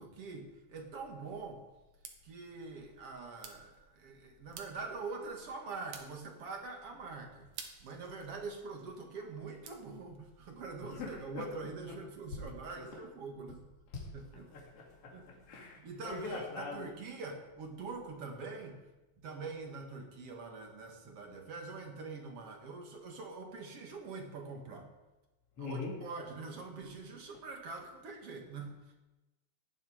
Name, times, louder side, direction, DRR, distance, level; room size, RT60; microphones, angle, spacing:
voice 1, 0.0-1.6 2.2-7.5 7.8-13.6 14.1-14.5 15.1-18.8 19.2-24.9 25.6-28.8, right 4 dB, 55° right, 3 dB, 2.7 m, -44 dB
sound 1, 1.5-11.2, right 6 dB, 75° right, 2.8 m, -55 dB
voice 2, 10.8-11.5 11.9-12.0 12.5-13.0 13.9-16.9 25.6-26.1, left 3 dB, 50° left, -2 dB, 3.2 m, -43 dB
17.0 x 11.0 x 5.1 m, 1.1 s
omnidirectional pair, 3.5 m